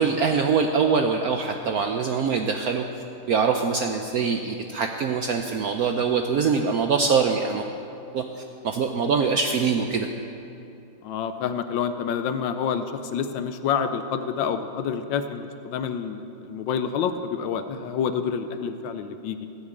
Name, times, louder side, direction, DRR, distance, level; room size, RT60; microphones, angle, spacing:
voice 1, 0.0-2.8 3.3-7.6 8.1-8.2 8.6-10.1, right 5 dB, 85° right, 4 dB, 0.8 m, -23 dB
voice 2, 11.0-19.5, left 7 dB, 70° left, 9 dB, 1.2 m, -28 dB
16.0 x 6.8 x 8.3 m, 2.7 s
omnidirectional pair, 2.3 m